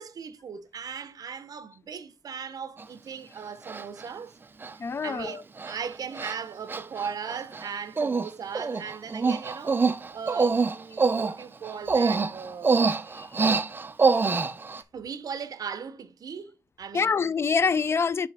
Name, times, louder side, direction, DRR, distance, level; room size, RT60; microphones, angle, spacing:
voice 1, 0.0-4.3 4.7-12.8 14.9-16.5 16.8-17.2, right 6 dB, 70° right, 0.7 m, -38 dB
Human voice, 2.8-2.9 3.7-4.0 4.6-4.7 5.1-5.3 5.6-5.7 6.1-6.4 6.7-7.7 8.0-8.3 8.5-14.8, right 4 dB, 30° right, 0.5 m, -25 dB
voice 2, 4.8-5.4 13.2-13.3 16.9-18.3, left 5 dB, 40° left, 0.4 m, -25 dB
6.8 x 4.9 x 3.4 m
wide cardioid pair, 120°, 7 cm